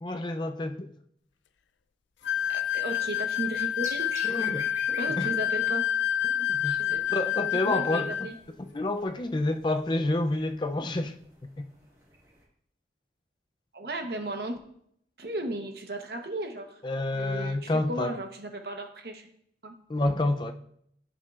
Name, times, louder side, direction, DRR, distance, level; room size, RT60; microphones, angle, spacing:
voice 1, 0.0-0.9 4.2-5.3 6.2-6.8 7.1-8.3 8.6-11.1 11.6-11.7 16.8-18.2 19.9-20.5, left 2 dB, 25° left, 0.4 m, -29 dB
sound 1, 2.2-8.3, left 11 dB, 80° left, 0.4 m, -28 dB
sound 2, 2.2-12.4, right 1 dB, 20° right, 1.7 m, -50 dB
voice 2, 2.5-4.2 5.0-5.9 6.8-7.0 7.6-8.3 13.7-14.6 15.2-16.8 17.1-19.3 19.6-19.7, right 1 dB, 60° right, 1.0 m, -35 dB
10.5 x 6.4 x 2.4 m
head